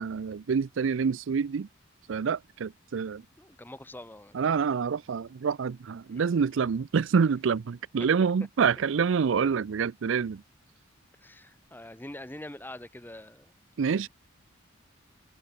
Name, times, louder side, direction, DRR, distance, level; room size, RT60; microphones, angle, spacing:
voice 1, 0.0-1.7 2.1-3.2 4.3-10.4 13.8-14.1, right 6 dB, 70° right, 0.4 m, -27 dB
voice 2, 3.4-4.4 6.1-6.2 11.2-13.5 13.9-14.1, left 1 dB, 10° left, 1.2 m, -44 dB
head